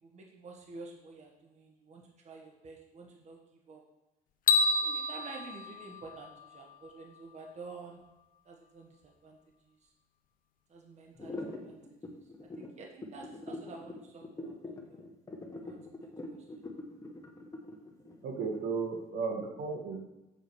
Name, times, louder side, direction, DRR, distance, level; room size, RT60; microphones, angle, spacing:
voice 1, 0.0-3.4 3.7-3.8 4.8-8.0 8.4-9.4 9.7-9.8 10.7-11.8 12.6-14.6 14.9-15.0 15.6-16.1, right 4 dB, 40° right, 1 dB, 1.5 m, -49 dB
sound 1, 4.5-6.7, left 3 dB, 55° left, 0.7 m, -29 dB
sound 2, 11.2-19.0, left 2 dB, 20° left, 1.4 m, -43 dB
voice 2, 18.2-20.0, right 4 dB, 75° right, 2 dB, 1.8 m, -34 dB
7.5 x 5.0 x 7.1 m, 0.98 s
cardioid pair, 110°, 17 cm